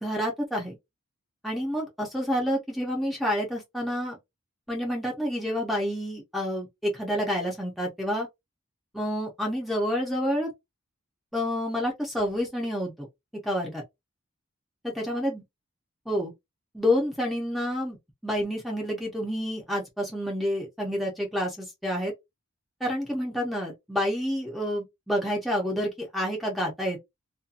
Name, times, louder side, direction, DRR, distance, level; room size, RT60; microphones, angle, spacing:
voice 1, 0.0-0.8 1.4-4.2 4.7-8.3 8.9-10.5 11.3-13.1 13.4-13.8 14.8-15.4 16.1-16.3 16.7-18.0 18.2-22.1 22.8-27.0, equal, ahead, 0.5 m, -28 dB
2.6 x 2.2 x 2.4 m
head